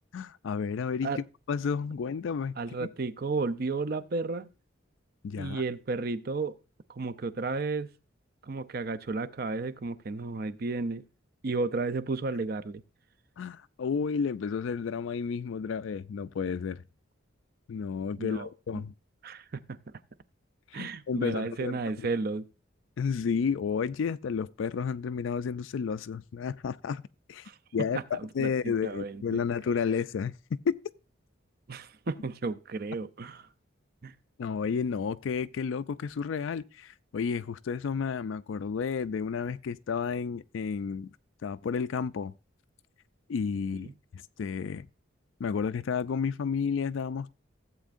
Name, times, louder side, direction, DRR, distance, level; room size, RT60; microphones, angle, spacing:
voice 1, 0.1-2.9 5.2-5.6 13.4-16.8 17.7-18.9 20.7-21.8 23.0-27.0 27.3-30.3 30.7-30.8 34.4-41.1 41.4-42.3 43.3-44.9 45.4-47.3, left 6 dB, 75° left, 0.4 m, -31 dB
voice 2, 2.6-4.5 5.4-6.6 6.9-7.9 8.4-11.0 11.4-12.8 18.2-18.5 18.7-18.8 19.2-19.8 20.7-22.5 27.4-27.6 28.1-29.4 31.7-33.4 34.0-34.1 43.7-43.9, right 3 dB, 50° right, 0.6 m, -33 dB
15.0 x 8.1 x 2.5 m
head